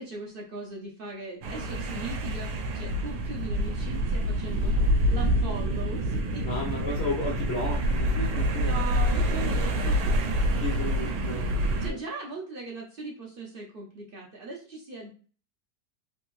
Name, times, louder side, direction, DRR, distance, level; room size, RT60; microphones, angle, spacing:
voice 1, 0.0-4.8 5.1-6.5 6.7-7.0 8.6-10.1 11.6-15.1, right 3 dB, 65° right, -1 dB, 0.5 m, -39 dB
sound 1, 1.4-11.9, equal, 85° right, 1.2 m, -27 dB
voice 2, 4.6-4.9 6.4-8.8 10.6-11.6 11.9-12.0, left 2 dB, 55° left, -1 dB, 0.7 m, -34 dB
3.4 x 2.6 x 3.0 m, 0.40 s
omnidirectional pair, 1.8 m